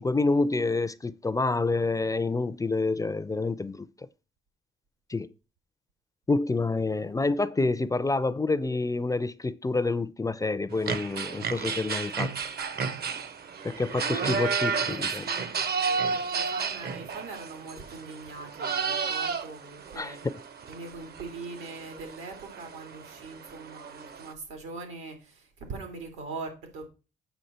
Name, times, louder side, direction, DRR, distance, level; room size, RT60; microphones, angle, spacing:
voice 1, 0.0-3.9 5.1-5.3 6.3-12.3 13.6-15.3 20.0-20.3, left 3 dB, 15° left, 0.5 m, -28 dB
voice 2, 6.8-7.1 14.9-20.2 20.7-26.9, right 3 dB, 90° right, 2.7 m, -42 dB
sound 1, 10.7-24.3, right 5 dB, 50° right, 0.9 m, -32 dB
8.0 x 6.0 x 4.2 m
cardioid pair, 90°, 20 cm